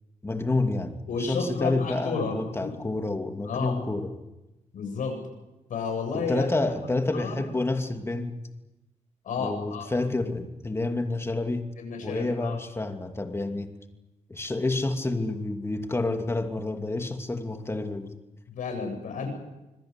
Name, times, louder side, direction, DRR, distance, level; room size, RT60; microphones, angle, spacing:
voice 1, 0.2-4.1 6.1-8.4 9.4-11.7 12.0-13.7 14.3-18.2, left 2 dB, 20° left, 5 dB, 2.6 m, -29 dB
voice 2, 1.1-2.7 3.4-3.7 4.7-5.2 5.7-6.5 7.2-7.4 9.2-9.9 11.8-12.6 18.5-19.3, left 4 dB, 80° left, 4 dB, 7.9 m, -31 dB
26.0 x 22.5 x 8.3 m, 1.0 s
cardioid pair, 115°, 13 cm